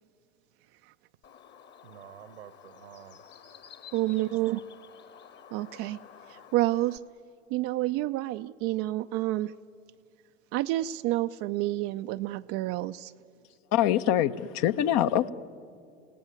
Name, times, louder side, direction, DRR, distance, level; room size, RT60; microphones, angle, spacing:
Bird, 1.2-7.0, left 8 dB, 30° left, 1.4 m, -51 dB
voice 1, 1.8-3.2 4.1-4.7, right 12 dB, 65° right, 1.2 m, -50 dB
voice 2, 3.9-4.6 5.5-6.0 6.3-7.0 7.5-9.5 10.5-13.1, right 17 dB, 40° right, 0.5 m, -29 dB
voice 3, 13.7-15.3, left 11 dB, 45° left, 0.9 m, -24 dB
29.0 x 17.5 x 9.4 m
figure-of-eight pair, 80°, 36 cm